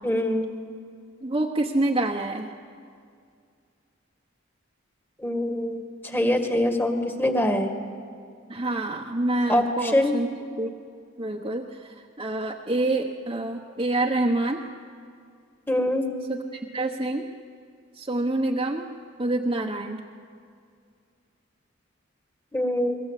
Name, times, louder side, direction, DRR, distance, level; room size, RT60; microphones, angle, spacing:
voice 1, 0.0-0.5 5.2-7.7 9.5-10.1 15.7-16.1 22.5-23.0, left 1 dB, 10° left, 5 dB, 2.1 m, -24 dB
voice 2, 1.2-2.5 8.5-10.3 10.6-10.7 11.2-14.6 16.3-17.3 17.9-20.0, right 2 dB, 25° right, -1 dB, 1.2 m, -27 dB
30.0 x 22.0 x 8.4 m, 2.3 s
head